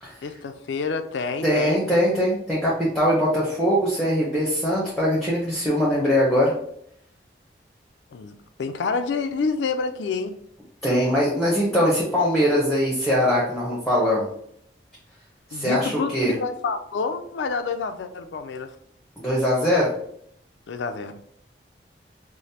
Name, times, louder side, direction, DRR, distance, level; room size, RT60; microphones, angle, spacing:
voice 1, 0.2-2.1 8.1-10.3 15.5-18.7 20.7-21.2, left 4 dB, 85° left, 8 dB, 0.4 m, -28 dB
voice 2, 1.4-6.5 10.8-14.3 15.5-16.4 19.2-19.9, equal, ahead, -5 dB, 0.7 m, -21 dB
5.0 x 2.0 x 2.7 m, 0.67 s
head